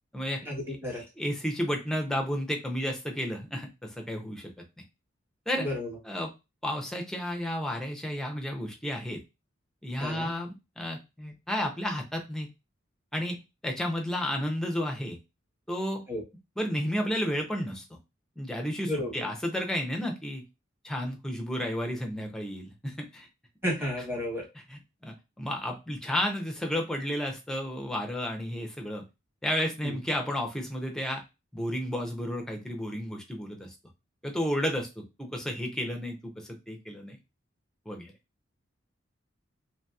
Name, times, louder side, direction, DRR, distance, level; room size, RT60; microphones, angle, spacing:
voice 1, 0.4-1.0 5.6-6.0 10.0-10.3 16.1-16.2 18.9-19.1 23.6-24.4 29.8-30.0, left 1 dB, 15° right, -3 dB, 1.2 m, -32 dB
voice 2, 1.2-4.5 5.5-5.7 6.1-6.3 6.6-9.2 9.8-12.5 13.1-15.2 15.7-16.0 16.6-18.0 18.4-20.4 20.8-23.3 24.7-29.0 29.4-31.2 31.5-33.7 34.2-37.2 37.9-38.1, equal, 5° left, 2 dB, 0.6 m, -32 dB
2.9 x 2.8 x 2.3 m, 0.25 s
head